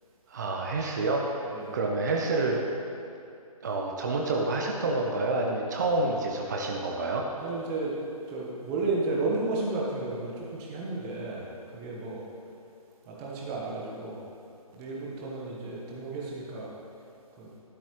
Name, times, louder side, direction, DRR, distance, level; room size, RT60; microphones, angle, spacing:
voice 1, 0.3-2.6 3.6-7.3, right 2 dB, 30° right, 0 dB, 0.7 m, -28 dB
voice 2, 7.4-7.9 8.3-12.2 13.1-14.2 14.7-16.7 17.4-17.5, right 3 dB, 10° right, -3 dB, 1.0 m, -33 dB
12.0 x 10.0 x 3.0 m, 2.7 s
figure-of-eight pair, 150°, 19 cm